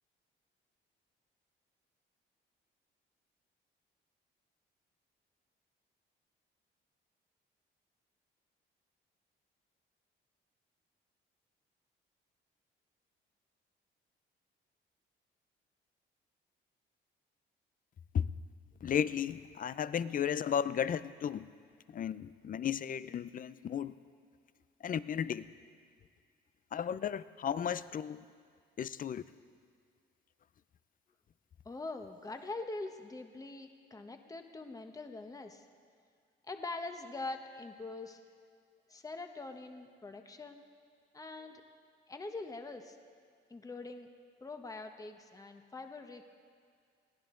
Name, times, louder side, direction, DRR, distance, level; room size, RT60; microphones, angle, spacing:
voice 1, 18.8-21.4 21.9-23.9 24.8-25.5 26.7-28.2 28.8-29.2, left 8 dB, 45° left, 16 dB, 0.5 m, -34 dB
voice 2, 31.6-35.6 36.5-38.2 38.9-40.6 41.1-41.6 42.1-43.0 43.5-44.1 44.4-46.2, left 3 dB, 15° left, 6 dB, 1.1 m, -43 dB
21.5 x 16.5 x 3.8 m, 2.1 s
cardioid pair, 90°, 20 cm